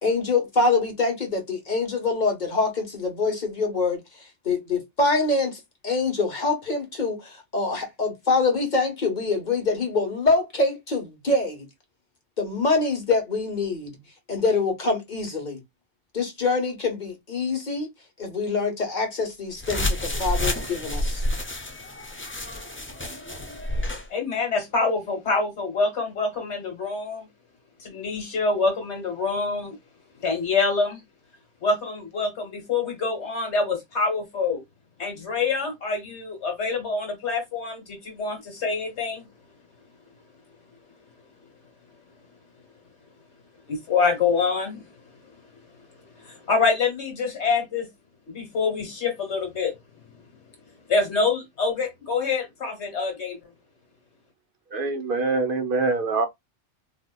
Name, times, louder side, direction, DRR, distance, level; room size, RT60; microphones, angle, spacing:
voice 1, 0.0-4.0 4.4-11.6 12.4-14.0 14.3-15.6 16.1-17.9 18.2-21.2, left 3 dB, 40° left, 1.3 m, -25 dB
sound 1, 19.6-24.1, left 1 dB, 20° left, 0.3 m, -29 dB
voice 2, 24.1-27.3 27.8-29.8 30.2-31.0 31.6-34.6 35.0-39.3 43.7-44.8 45.2-45.3 46.1-47.9 48.3-49.8 50.9-53.4, left 4 dB, 70° left, 1.6 m, -26 dB
voice 3, 54.7-56.3, right 3 dB, 55° right, 0.8 m, -24 dB
3.9 x 2.8 x 2.2 m
omnidirectional pair, 1.2 m